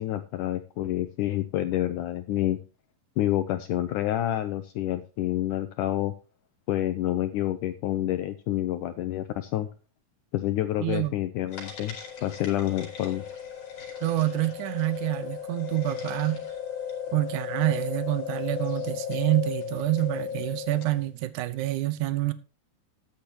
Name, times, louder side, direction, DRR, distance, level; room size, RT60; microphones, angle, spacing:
voice 1, 0.0-2.6 3.2-6.1 6.7-9.7 10.3-12.0 12.2-13.2, left 13 dB, 80° left, 1.8 m, -28 dB
sound 1, 11.5-21.0, left 8 dB, 55° left, 5.5 m, -35 dB
voice 2, 14.0-16.5 17.1-22.3, right 17 dB, 75° right, 1.9 m, -27 dB
13.5 x 10.5 x 2.9 m
omnidirectional pair, 4.4 m